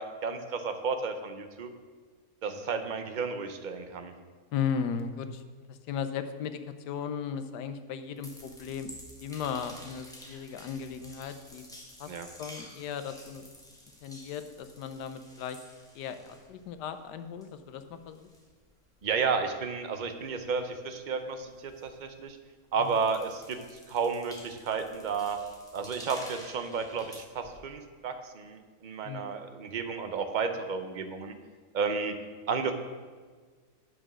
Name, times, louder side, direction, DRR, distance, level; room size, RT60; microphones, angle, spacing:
voice 1, 0.0-1.7 2.4-4.1 12.1-12.3 19.0-22.4 22.7-25.4 25.7-31.3 31.7-32.1 32.5-32.7, right 5 dB, 65° right, 7 dB, 0.4 m, -32 dB
voice 2, 4.5-5.4 5.7-6.6 6.9-8.9 9.2-11.6 12.0-12.1 12.4-13.5 14.0-15.6 15.9-18.3 22.8-22.9 29.0-29.3, left 7 dB, 85° left, 10 dB, 1.3 m, -36 dB
sound 1, 8.1-17.1 17.4-22.4 22.7-27.6, equal, ahead, 1.2 m, -51 dB
9.0 x 6.1 x 6.1 m, 1.5 s
omnidirectional pair, 1.7 m